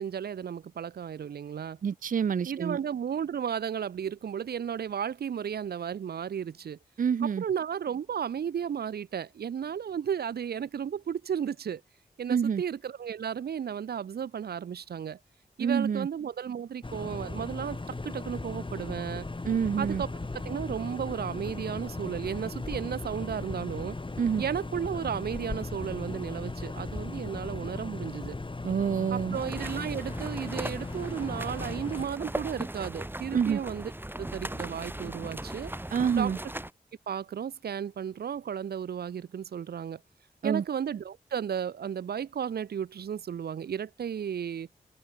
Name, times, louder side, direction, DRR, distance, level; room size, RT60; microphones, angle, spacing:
voice 1, 0.0-1.8 2.4-6.8 7.2-11.8 12.2-15.2 15.6-19.3 19.8-24.0 24.4-28.3 29.1-33.9 34.2-35.7 36.1-36.5 37.1-40.0 40.4-44.7, right 8 dB, 90° right, 1.2 m, -34 dB
voice 2, 1.8-2.8 7.0-7.4 12.3-12.6 15.6-16.1 19.5-20.0 24.2-24.4 28.6-29.4 33.3-33.6 35.9-36.4 40.4-40.6, right 7 dB, 60° right, 0.5 m, -27 dB
sound 1, 16.8-32.1, left 2 dB, 30° left, 3.1 m, -37 dB
sound 2, 29.3-36.7, right 1 dB, 15° right, 3.0 m, -38 dB
cardioid pair, 50°, 16 cm